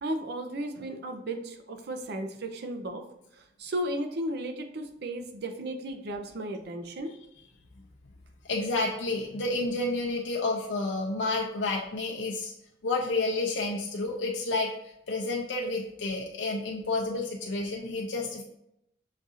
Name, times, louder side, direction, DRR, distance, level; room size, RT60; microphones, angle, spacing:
voice 1, 0.0-3.0 3.6-7.2, right 1 dB, 60° right, 6 dB, 0.5 m, -34 dB
voice 2, 8.4-12.5 12.8-14.7 15.1-18.4, left 2 dB, 85° left, -1 dB, 0.6 m, -30 dB
6.3 x 2.4 x 2.7 m, 0.79 s
head